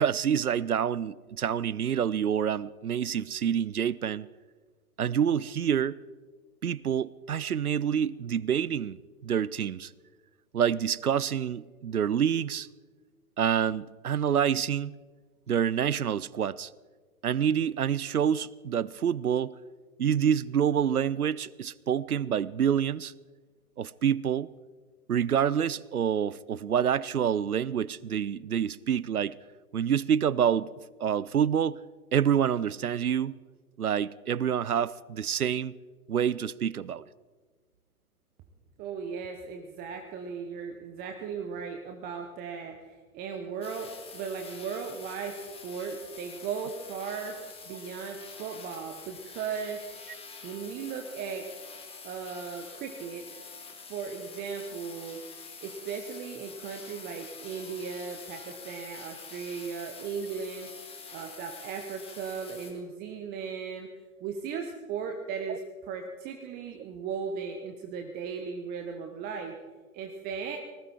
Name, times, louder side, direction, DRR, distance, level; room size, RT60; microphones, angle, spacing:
voice 1, 0.0-4.3 5.0-6.0 6.6-9.0 9.2-9.9 10.5-12.7 13.4-15.0 15.5-16.7 17.2-19.5 20.0-23.1 23.8-24.5 25.1-29.4 29.7-30.7 31.0-31.8 32.1-33.4 33.8-35.8 36.1-37.0 65.5-65.6, right 8 dB, 85° right, 0.6 m, -27 dB
voice 2, 38.8-47.4 47.7-49.8 50.4-51.5 52.0-53.2 53.9-55.2 55.6-60.7 61.1-63.9 64.2-65.6 65.9-69.6 69.9-70.6, right 6 dB, 20° right, 1.0 m, -37 dB
sound 1, 43.6-62.7, left 5 dB, 15° left, 2.0 m, -46 dB
19.5 x 16.0 x 4.4 m
figure-of-eight pair, 115°, 44 cm